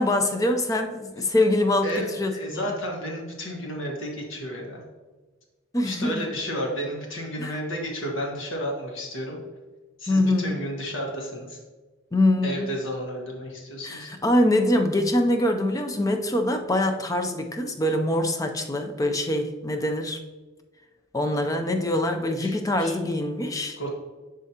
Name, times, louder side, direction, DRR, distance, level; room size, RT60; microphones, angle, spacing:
voice 1, 0.0-2.7 5.7-6.3 7.4-7.6 10.1-10.5 12.1-12.7 13.8-20.2 21.1-23.8, left 1 dB, 15° left, 5 dB, 0.5 m, -24 dB
voice 2, 1.8-4.8 5.8-9.4 10.0-11.6 12.4-14.1 22.4-22.9 23.8-23.9, equal, 75° left, 0 dB, 1.5 m, -32 dB
10.5 x 3.7 x 2.8 m, 1.3 s
head